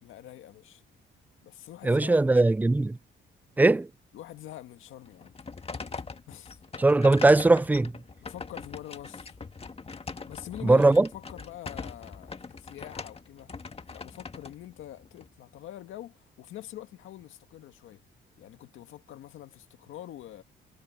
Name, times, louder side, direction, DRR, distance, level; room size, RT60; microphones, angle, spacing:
voice 1, 0.0-0.8 1.4-2.2 2.4-2.5 4.1-5.3 6.3-6.6 8.2-9.4 10.3-13.5 13.9-18.0 18.4-20.4, left 13 dB, 80° left, 1.8 m, -45 dB
voice 2, 1.8-3.0 3.6-3.9 6.8-7.9 10.6-11.1, right 2 dB, 10° right, 0.3 m, -20 dB
sound 1, 5.0-15.3, left 4 dB, 30° left, 1.8 m, -42 dB
cardioid pair, 90°, 20 cm